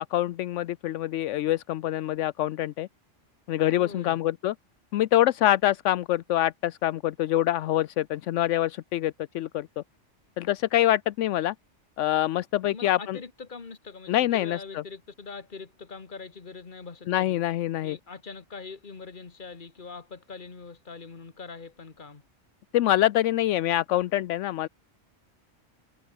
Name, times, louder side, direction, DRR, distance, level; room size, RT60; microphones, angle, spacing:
voice 1, 0.0-2.9 3.5-4.5 4.9-9.8 10.4-11.5 12.0-13.2 14.1-14.8 17.1-18.0 22.7-24.7, left 13 dB, 80° left, 0.9 m, -25 dB
voice 2, 3.7-4.2 12.7-17.4 17.8-22.2, left 4 dB, 40° left, 1.8 m, -43 dB
omnidirectional pair, 1.3 m